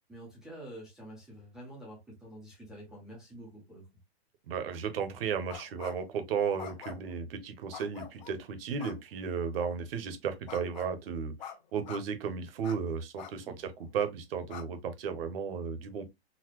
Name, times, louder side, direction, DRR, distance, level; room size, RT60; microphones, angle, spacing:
voice 1, 0.1-3.8 13.4-13.6, right 1 dB, ahead, 0.4 m, -48 dB
voice 2, 4.5-11.3 11.7-16.1, right 6 dB, 60° right, 0.9 m, -34 dB
sound 1, 5.5-6.1 6.6-7.2 7.7-8.3 8.8-9.0 10.5-10.9 11.4-11.6 11.8-12.0 12.6-12.8 13.2-13.3 13.8-13.9 14.5-14.6, left 8 dB, 45° left, 0.7 m, -45 dB
4.0 x 2.0 x 3.0 m
hypercardioid pair, 160°, 32 cm